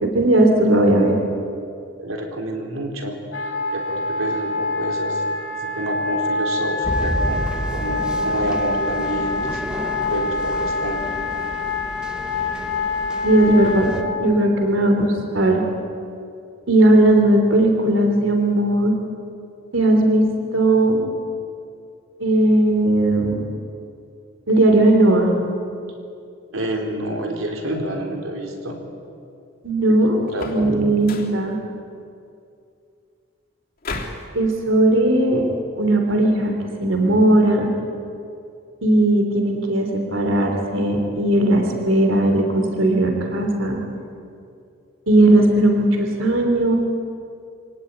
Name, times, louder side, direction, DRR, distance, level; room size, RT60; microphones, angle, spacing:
voice 1, 0.0-1.2 13.2-13.9 14.2-15.6 16.7-18.9 19.7-21.1 22.2-23.5 24.5-25.3 29.6-30.2 30.4-31.6 34.3-35.4 35.8-36.5 36.8-37.7 38.8-43.8 45.1-46.8, right 1 dB, 70° right, 3 dB, 3.2 m, -17 dB
voice 2, 2.0-5.2 5.5-9.7 10.0-11.0 26.5-28.8 30.3-30.7, right 1 dB, 90° right, 1 dB, 4.4 m, -29 dB
Wind instrument woodwind instrument, 3.3-14.1, left 2 dB, 75° left, 3.9 m, -25 dB
sound 1, 6.8-14.0, equal, 5° right, 1.5 m, -31 dB
sound 2, 30.3-30.7 31.0-31.4 33.8-34.3, left 3 dB, 45° left, 3.2 m, -32 dB
25.0 x 18.0 x 9.5 m, 2.5 s
head